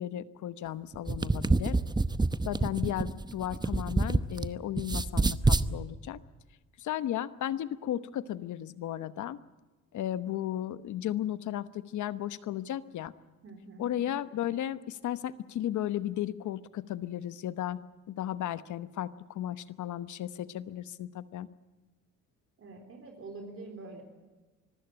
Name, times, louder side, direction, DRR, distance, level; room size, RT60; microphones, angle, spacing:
voice 1, 0.0-1.8 2.4-6.2 6.8-9.4 9.9-13.1 13.8-17.8 18.1-21.5, left 12 dB, 75° left, 14 dB, 1.1 m, -35 dB
sound 1, 0.9-4.5 4.8-5.7, right 3 dB, 15° right, 0.8 m, -27 dB
voice 2, 13.4-13.9 22.6-24.0, right 3 dB, 45° right, 3 dB, 3.8 m, -45 dB
25.0 x 15.5 x 9.0 m, 1.2 s
cardioid pair, 90°, 30 cm